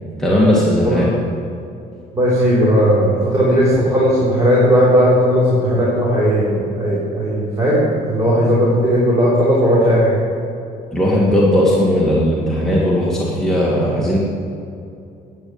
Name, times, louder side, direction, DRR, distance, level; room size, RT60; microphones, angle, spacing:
voice 1, 0.2-1.1 10.9-14.2, equal, 5° left, -7 dB, 2.3 m, -16 dB
voice 2, 2.1-10.2, equal, 20° right, -8 dB, 3.8 m, -16 dB
11.0 x 9.1 x 7.4 m, 2.6 s
cardioid pair, 110°, 17 cm